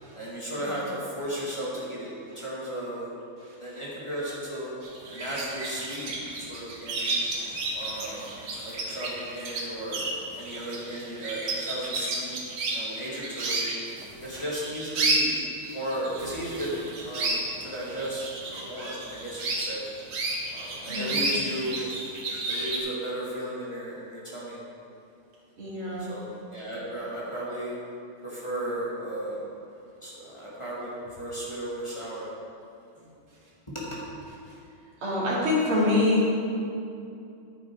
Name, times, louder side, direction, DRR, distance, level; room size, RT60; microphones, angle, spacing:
voice 1, 0.1-3.0 3.6-4.7 5.1-6.1 6.4-7.2 7.7-8.3 8.6-12.3 12.7-13.6 14.2-15.4 15.7-16.7 17.0-19.9 20.5-21.8 22.5-24.6 26.0-27.7 28.2-29.4 30.0-30.9 31.2-32.3 33.7-33.8, right 1 dB, 15° left, -7 dB, 1.9 m, -35 dB
voice 2, 3.4-3.8 6.5-6.6 7.0-7.2 8.1-8.2 20.9-21.2 25.6-26.1 34.5-34.6 35.0-36.3, left 2 dB, 90° right, -6 dB, 3.3 m, -27 dB
sound 1, 4.8-22.8, right 2 dB, 70° right, 2.2 m, -32 dB
10.5 x 9.0 x 4.6 m, 2.6 s
omnidirectional pair, 2.3 m